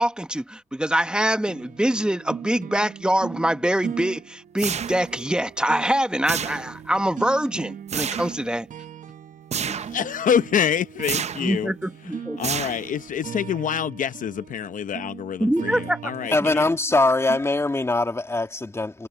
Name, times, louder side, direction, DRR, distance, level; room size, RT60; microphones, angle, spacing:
voice 1, 0.0-8.7 9.7-9.8 11.4-12.5 15.4-16.0, right 1 dB, 5° right, 1.2 m, -24 dB
sound 1, 1.5-17.4, right 8 dB, 80° right, 0.9 m, -39 dB
sound 2, 4.6-5.2 6.3-6.9 7.9-8.4 9.5-10.0 11.0-11.6 12.4-13.1, right 7 dB, 55° right, 0.6 m, -29 dB
voice 2, 9.6-11.7 12.0-16.7, left 8 dB, 90° left, 0.8 m, -26 dB
voice 3, 16.3-19.1, left 2 dB, 20° left, 1.9 m, -22 dB
wide cardioid pair, 130°, 13 cm